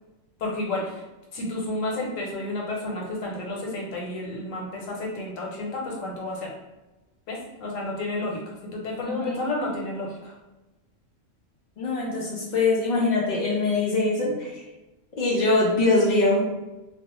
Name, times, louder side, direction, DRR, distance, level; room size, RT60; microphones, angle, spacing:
voice 1, 0.4-1.0 1.3-6.5 7.3-10.4, left 2 dB, 85° left, -2 dB, 1.1 m, -31 dB
voice 2, 9.0-9.4 11.8-14.6 15.2-16.4, left 2 dB, 70° left, -4 dB, 0.4 m, -23 dB
2.4 x 2.0 x 2.9 m, 1.1 s
omnidirectional pair, 1.3 m